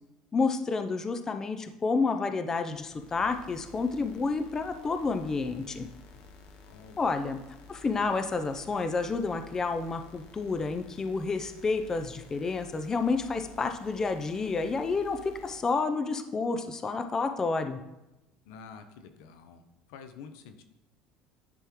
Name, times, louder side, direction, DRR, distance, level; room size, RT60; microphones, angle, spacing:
voice 1, 0.3-5.9 7.0-7.4 7.7-17.8, left 4 dB, 20° left, 8 dB, 0.5 m, -30 dB
sound 1, 2.7-15.6, left 3 dB, 65° left, 0.9 m, -52 dB
voice 2, 6.7-7.0 18.4-19.6 19.9-20.6, left 6 dB, 90° left, 8 dB, 0.6 m, -48 dB
10.0 x 3.6 x 3.0 m, 0.96 s
cardioid pair, 125°, 2 cm